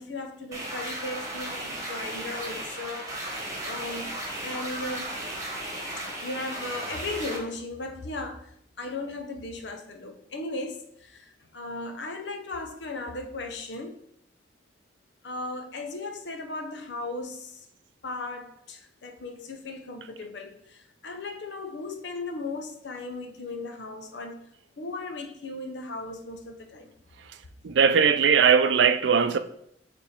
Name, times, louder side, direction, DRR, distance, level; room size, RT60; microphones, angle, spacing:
voice 1, 0.0-3.2 3.6-4.1 4.4-5.1 6.0-14.0 15.2-17.7 18.0-24.4 24.8-26.9, left 2 dB, 75° left, 0.8 m, -37 dB
sound 1, 0.5-7.4, right 1 dB, 20° right, 1.5 m, -35 dB
voice 2, 27.6-29.4, right 6 dB, 80° right, 0.5 m, -19 dB
6.8 x 3.5 x 4.3 m
head